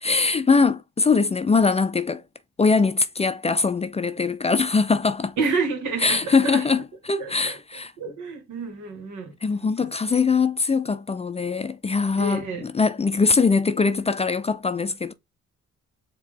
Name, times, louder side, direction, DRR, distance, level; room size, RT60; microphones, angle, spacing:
voice 1, 0.0-2.2 2.6-5.4 6.0-7.9 9.4-15.1, left 4 dB, 20° left, 0.4 m, -22 dB
voice 2, 5.4-6.6 7.2-7.6 8.0-9.3 12.2-12.7, right 4 dB, 80° right, 2.0 m, -29 dB
4.5 x 2.9 x 3.6 m
cardioid pair, 90°, 30 cm